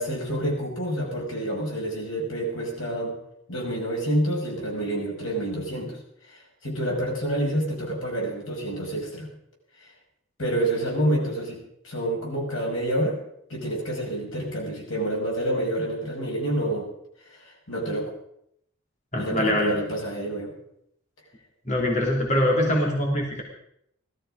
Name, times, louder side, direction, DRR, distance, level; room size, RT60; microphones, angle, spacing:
voice 1, 0.0-3.2 3.5-6.0 6.3-9.3 10.4-13.2 13.5-16.9 17.4-18.1 19.2-20.5, right 1 dB, 90° left, -1 dB, 5.8 m, -28 dB
voice 2, 19.1-19.7 21.7-23.4, left 1 dB, 35° left, -1 dB, 3.1 m, -23 dB
17.5 x 14.0 x 5.0 m, 0.73 s
head